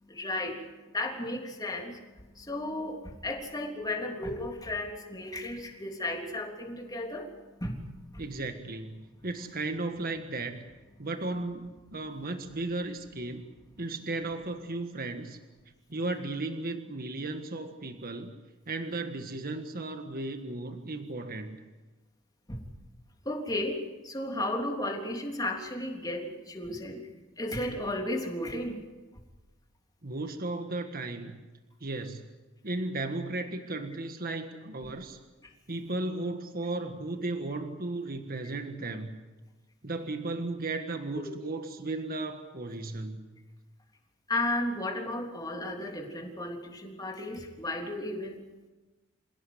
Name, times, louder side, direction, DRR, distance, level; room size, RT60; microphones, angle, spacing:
voice 1, 0.1-0.6 0.9-2.0 2.3-7.3 7.6-7.8 8.1-8.2 22.5-22.6 23.2-27.1 27.4-28.8 44.3-48.4, left 1 dB, 20° left, 1 dB, 3.4 m, -34 dB
voice 2, 8.2-10.6 11.0-13.5 13.8-15.4 15.9-18.4 18.7-21.6 30.0-31.4 31.8-32.2 32.6-35.2 35.7-39.1 39.8-43.4, right 2 dB, 45° right, 6 dB, 1.6 m, -35 dB
27.5 x 17.5 x 8.0 m, 1.2 s
head